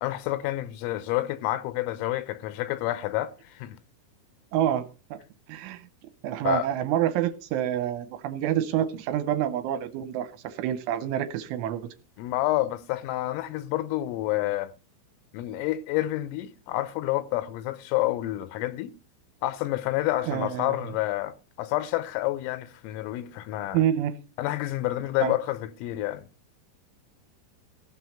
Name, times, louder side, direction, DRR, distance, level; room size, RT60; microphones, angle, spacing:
voice 1, 0.0-3.8 6.4-6.7 12.2-14.7 15.3-18.9 19.4-23.8 24.4-26.3, left 16 dB, 85° left, 3.4 m, -29 dB
voice 2, 4.5-5.2 5.5-5.9 6.2-11.9 20.2-20.8 23.7-24.1 25.2-25.3, right 11 dB, 80° right, 3.1 m, -27 dB
16.0 x 6.3 x 5.7 m
omnidirectional pair, 5.8 m